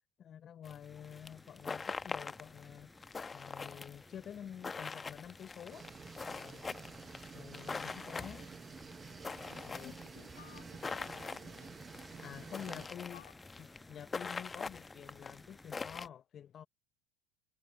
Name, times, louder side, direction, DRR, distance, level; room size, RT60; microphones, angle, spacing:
voice 1, 0.2-2.9 3.3-5.9 6.3-6.7 7.3-8.5 9.7-10.2 12.2-13.2 13.6-16.7, left 9 dB, 40° left, 0.7 m, -49 dB
sound 1, 0.6-16.1, left 4 dB, 20° left, 1.0 m, -44 dB
sound 2, 0.8-16.1, equal, ahead, 4.8 m, -59 dB
sound 3, 5.7-12.9, right 6 dB, 30° right, 0.8 m, -51 dB
voice 2, 9.5-11.8 12.3-13.3, left 14 dB, 80° left, 2.9 m, -59 dB
hypercardioid pair, 80°, 0 cm